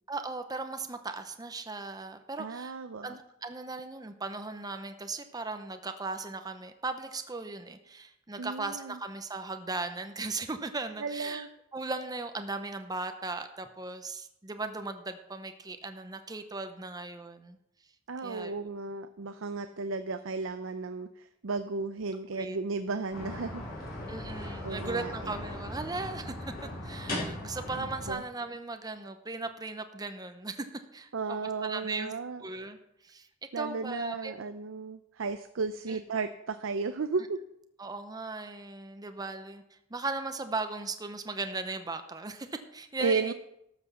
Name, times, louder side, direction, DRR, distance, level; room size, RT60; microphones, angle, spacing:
voice 1, 0.1-2.7 3.0-11.5 11.7-17.6 18.2-18.7 22.3-22.6 24.1-26.5 26.8-32.1 32.4-32.8 33.0-33.3 33.6-34.3 35.9-36.0 37.8-43.3, right 3 dB, 20° right, 8 dB, 0.8 m, -37 dB
voice 2, 2.4-3.2 8.4-9.0 11.0-11.5 18.1-21.1 21.4-23.6 24.6-25.3 27.8-28.2 31.1-32.4 33.5-37.4 43.0-43.3, right 4 dB, 90° right, 9 dB, 0.6 m, -34 dB
sound 1, 23.1-28.1, left 1 dB, 50° left, 5.3 m, -38 dB
12.5 x 6.1 x 7.0 m, 0.80 s
head